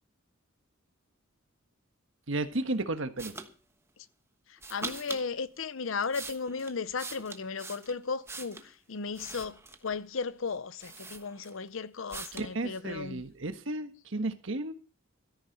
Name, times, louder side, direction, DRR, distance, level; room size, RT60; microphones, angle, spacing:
voice 1, 2.3-3.3 12.3-14.7, right 2 dB, 70° right, 1.4 m, -33 dB
sound 1, 3.2-3.5 4.6-5.3 5.9-8.7 9.1-9.9 10.5-10.6 10.8-11.7 12.1-12.5, right 3 dB, 15° right, 1.2 m, -42 dB
voice 2, 4.7-9.6 9.8-13.2, left 5 dB, 70° left, 0.7 m, -35 dB
13.5 x 10.5 x 5.3 m
head